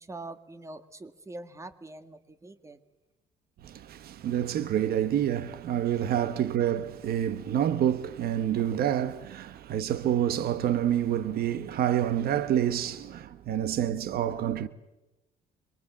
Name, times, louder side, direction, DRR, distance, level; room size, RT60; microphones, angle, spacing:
voice 1, 0.0-2.8, right 2 dB, 15° right, 1.9 m, -44 dB
voice 2, 3.6-14.7, right 10 dB, 65° right, 1.2 m, -28 dB
27.0 x 22.5 x 7.4 m
cardioid pair, 110°, 17 cm